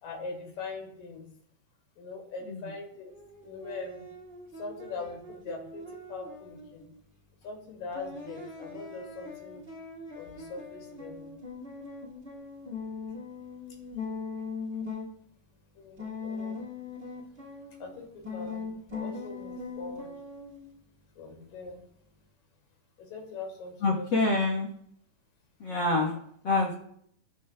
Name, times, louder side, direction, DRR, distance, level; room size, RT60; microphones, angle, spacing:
voice 1, 0.0-1.3 2.0-3.1 3.4-4.1 4.6-6.8 7.4-9.6 10.1-11.3 15.8-16.6 17.8-20.2 21.2-21.8 23.0-24.3, left 4 dB, 80° left, 0 dB, 3.7 m, -42 dB
sound 1, 3.1-7.0 7.9-15.1 16.0-18.0 18.2-20.8, left 4 dB, 25° right, 1.9 m, -41 dB
voice 2, 23.8-24.7 25.6-26.1 26.4-26.8, left 2 dB, 60° left, 0 dB, 1.2 m, -26 dB
20.0 x 7.1 x 2.2 m, 0.69 s
omnidirectional pair, 3.8 m